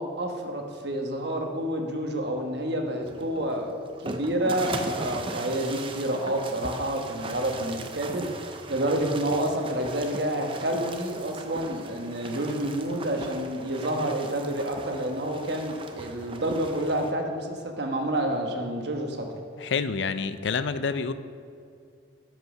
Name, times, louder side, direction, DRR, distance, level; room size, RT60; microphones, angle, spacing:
voice 1, 0.0-19.3, right 1 dB, 60° right, 2 dB, 1.2 m, -29 dB
sound 1, 3.0-17.1, right 3 dB, 25° right, 0.5 m, -38 dB
voice 2, 19.6-21.1, left 5 dB, 70° left, 12 dB, 0.4 m, -28 dB
10.5 x 5.5 x 6.4 m, 2.3 s
head